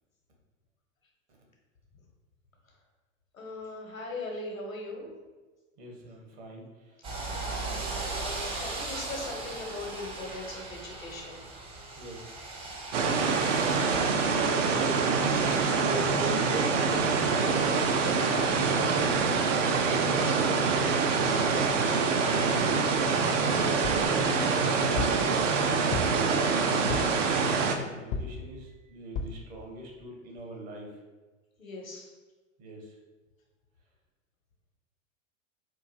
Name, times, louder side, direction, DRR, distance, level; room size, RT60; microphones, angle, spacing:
voice 1, 3.3-5.1 7.9-11.5 13.4-14.2 27.7-27.8 31.6-32.1, left 2 dB, 85° left, 0 dB, 0.9 m, -40 dB
voice 2, 5.8-7.5 12.0-12.3 14.7-15.2 15.6-21.9 22.4-30.9 32.6-33.0, right 1 dB, 50° right, -1 dB, 1.2 m, -42 dB
sound 1, 7.0-15.6, right 3 dB, 15° right, 0.4 m, -38 dB
sound 2, 12.9-27.8, right 4 dB, 65° right, 0.6 m, -25 dB
sound 3, 23.8-24.1 25.0-25.3 25.9-26.3 26.9-27.2 28.1-28.5 29.2-29.4 30.0-30.1 30.4-30.5, left 5 dB, 45° left, 0.4 m, -34 dB
4.5 x 2.6 x 2.6 m, 1.3 s
figure-of-eight pair, 90°, 39 cm